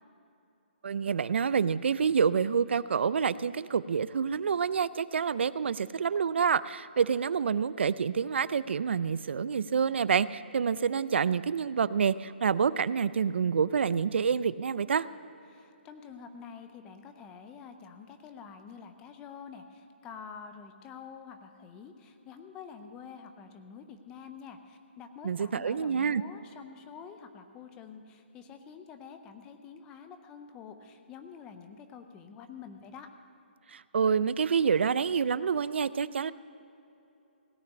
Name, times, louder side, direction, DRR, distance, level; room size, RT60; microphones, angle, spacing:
voice 1, 0.8-15.1 25.2-26.2 33.7-36.3, right 6 dB, 75° right, 17 dB, 0.4 m, -27 dB
voice 2, 15.5-33.1, left 6 dB, 10° left, 8 dB, 0.5 m, -47 dB
17.0 x 5.8 x 8.5 m, 2.9 s
hypercardioid pair, 170°, 6 cm